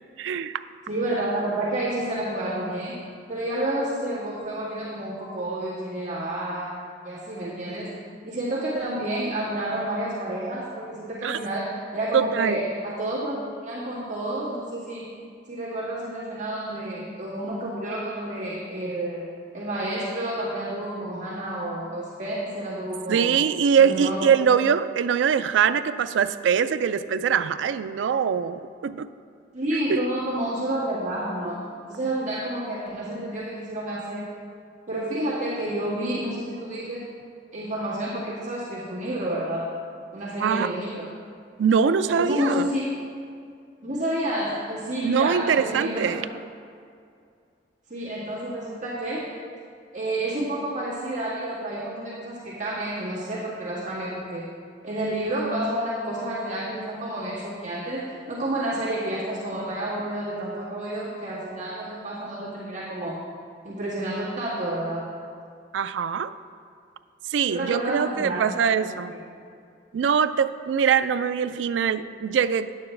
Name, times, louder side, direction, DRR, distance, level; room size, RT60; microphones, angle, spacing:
voice 1, 0.2-0.6 11.2-11.4 12.1-12.6 23.1-29.1 29.9-30.0 40.4-40.7 41.6-42.7 45.0-46.3 65.7-66.3 67.3-69.1 69.9-72.7, right 7 dB, 90° right, 13 dB, 0.3 m, -23 dB
voice 2, 0.9-3.0 3.3-6.7 7.0-7.9 8.2-15.1 15.5-19.3 19.5-23.4 23.8-24.5 29.5-34.3 34.9-37.1 37.5-39.7 40.1-41.1 42.1-42.8 43.8-46.1 47.9-49.3 49.9-54.4 54.8-63.2 63.6-65.1 67.5-68.5 68.8-69.2, right 1 dB, 45° right, -9 dB, 1.9 m, -30 dB
9.5 x 9.1 x 3.2 m, 2.3 s
head